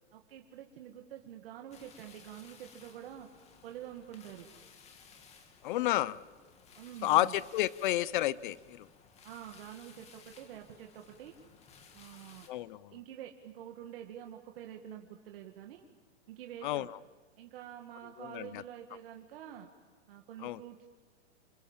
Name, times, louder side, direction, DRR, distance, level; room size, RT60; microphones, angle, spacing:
voice 1, 0.1-3.3 3.6-4.5 6.8-7.4 9.2-11.3 11.9-12.5 12.9-15.9 16.3-16.9 17.4-19.7 20.1-20.9, right 11 dB, 55° right, 2.2 m, -47 dB
sound 1, 1.7-12.5, left 5 dB, 20° left, 2.6 m, -58 dB
voice 2, 5.6-6.2 7.0-8.9 12.5-12.9 16.6-16.8 18.3-18.6 20.4-20.6, left 15 dB, 45° left, 0.8 m, -30 dB
27.5 x 27.5 x 7.4 m
hypercardioid pair, 155°, 35 cm